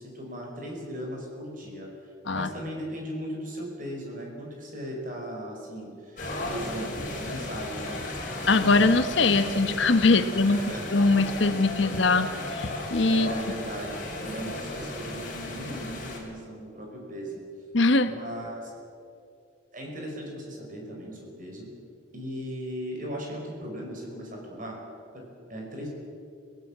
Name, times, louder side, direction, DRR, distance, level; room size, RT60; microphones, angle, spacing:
voice 1, 0.0-8.0 10.1-10.9 13.1-17.4 18.1-18.7 19.7-21.7 22.1-24.8 25.1-25.9, equal, 40° right, 0 dB, 5.5 m, -38 dB
sound 1, 6.2-16.2, left 2 dB, 40° left, 4.7 m, -35 dB
voice 2, 8.5-10.6 10.9-13.3 17.7-18.1, left 3 dB, 65° left, 10 dB, 1.1 m, -22 dB
25.5 x 17.0 x 7.4 m, 2.5 s
head